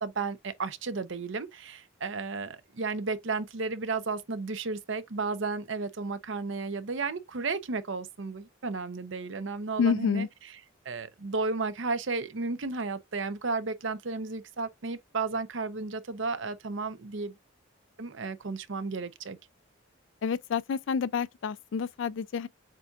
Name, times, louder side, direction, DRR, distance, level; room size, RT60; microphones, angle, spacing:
voice 1, 0.0-10.5 10.8-17.3 18.0-19.4, right 4 dB, 65° right, 0.7 m, -33 dB
voice 2, 9.8-10.3 20.2-22.5, left 6 dB, 65° left, 0.3 m, -28 dB
7.4 x 2.7 x 2.4 m
head